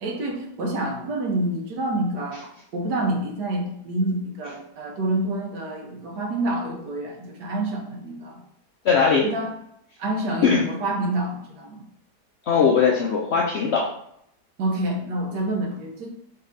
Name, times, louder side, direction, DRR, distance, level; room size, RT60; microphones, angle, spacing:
voice 1, 0.0-8.4 9.2-9.6 10.0-11.8 14.6-16.1, right 1 dB, 90° right, 1 dB, 1.5 m, -27 dB
voice 2, 8.8-9.3 10.4-10.6 12.5-13.8, left 6 dB, 70° left, -1 dB, 0.6 m, -19 dB
4.0 x 3.2 x 3.9 m, 0.75 s
omnidirectional pair, 1.8 m